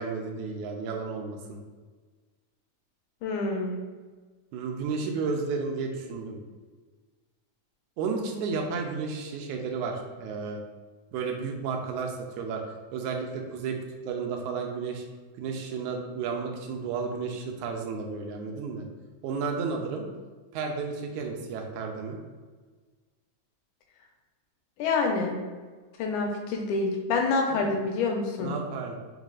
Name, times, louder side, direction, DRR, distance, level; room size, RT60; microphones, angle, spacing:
voice 1, 0.0-1.6 4.5-6.4 8.0-10.6 11.1-12.6 12.9-15.0 15.4-18.9 19.2-20.1 20.5-22.2 27.5-27.7 28.4-29.0, right 5 dB, 80° right, 2 dB, 2.0 m, -32 dB
voice 2, 3.2-3.8 24.8-25.4 26.0-28.6, left 3 dB, 80° left, 1 dB, 2.1 m, -27 dB
5.0 x 4.0 x 2.4 m, 1.4 s
omnidirectional pair, 3.5 m